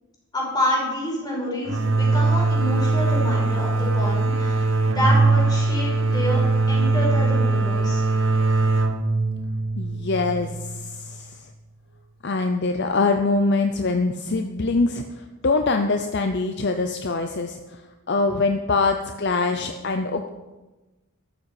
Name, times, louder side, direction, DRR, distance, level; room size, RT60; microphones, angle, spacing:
voice 1, 0.3-6.4 6.7-8.0, left 1 dB, 20° left, -4 dB, 5.2 m, -28 dB
sound 1, 1.7-11.2, right 3 dB, 60° right, 1.1 m, -21 dB
voice 2, 9.8-11.4 12.2-17.8 18.1-20.3, left 3 dB, 50° left, 6 dB, 0.6 m, -24 dB
13.0 x 12.5 x 4.9 m, 1.1 s
head